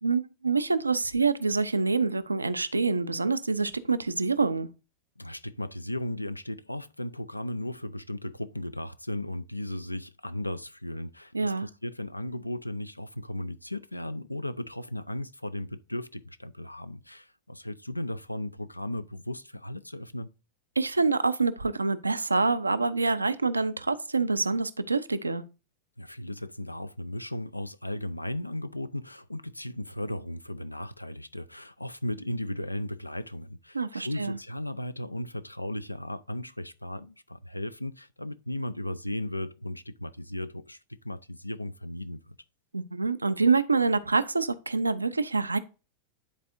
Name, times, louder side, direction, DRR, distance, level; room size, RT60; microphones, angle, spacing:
voice 1, 0.0-4.7 11.3-11.7 20.8-25.4 33.7-34.4 42.7-45.6, right 4 dB, 80° right, 0.4 m, -26 dB
voice 2, 5.2-20.3 26.0-40.8 41.0-42.4, left 1 dB, 85° left, 0.4 m, -36 dB
10.5 x 4.1 x 2.5 m
figure-of-eight pair, 90°, 0 cm